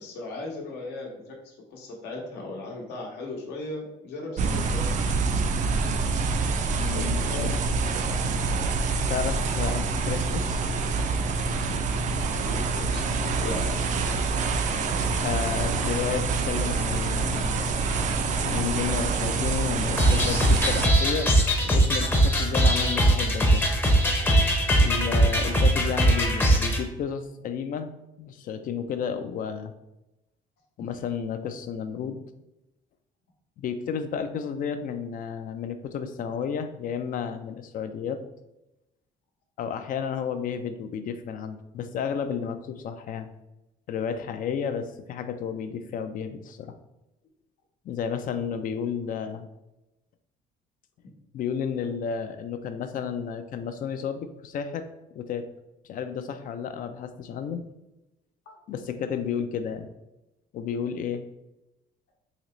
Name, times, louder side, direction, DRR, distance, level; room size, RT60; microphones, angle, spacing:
voice 1, 0.0-4.9 6.9-7.5 7.9-8.1 12.4-13.0 13.4-13.6 30.8-30.9 58.5-58.8, left 2 dB, 80° left, 0 dB, 1.1 m, -37 dB
sound 1, 4.4-20.9, right 4 dB, 45° right, 0.4 m, -26 dB
voice 2, 6.8-7.5 9.1-10.7 15.2-17.5 18.4-21.3 21.6-23.6 24.8-27.9 28.2-29.7 30.8-32.2 33.6-38.2 39.6-43.3 43.9-46.8 47.8-49.5 51.3-54.9 55.1-55.5 55.8-57.6 58.7-59.9 60.5-61.2, left 7 dB, 55° left, 9 dB, 0.4 m, -32 dB
sound 2, 20.0-26.8, right 1 dB, 10° left, 0.6 m, -21 dB
3.9 x 2.9 x 3.1 m, 0.94 s
cardioid pair, 110°, 17 cm